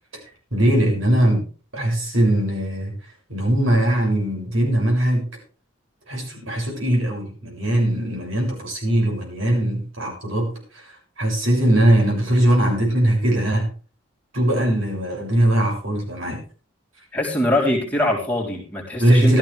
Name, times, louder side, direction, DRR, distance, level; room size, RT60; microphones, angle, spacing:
voice 1, 0.5-1.4 1.7-2.9 3.3-5.3 6.1-10.8 11.2-13.7 14.3-16.4 19.0-19.4, right 1 dB, 75° right, -1 dB, 7.0 m, -20 dB
voice 2, 17.1-19.4, left 1 dB, 5° left, -2 dB, 3.7 m, -22 dB
15.5 x 13.0 x 3.5 m, 0.38 s
head